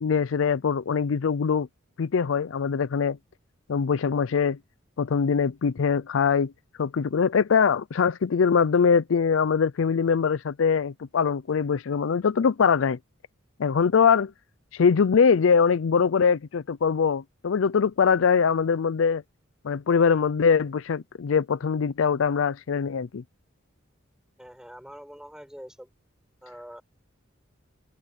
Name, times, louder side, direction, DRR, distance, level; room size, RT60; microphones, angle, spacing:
voice 1, 0.0-1.7 2.0-3.2 3.7-4.6 5.0-6.5 6.8-13.0 13.6-14.3 14.7-19.2 19.6-23.2, left 6 dB, 75° left, 0.5 m, -22 dB
voice 2, 24.4-25.9 26.4-26.8, equal, 5° right, 6.0 m, -44 dB
head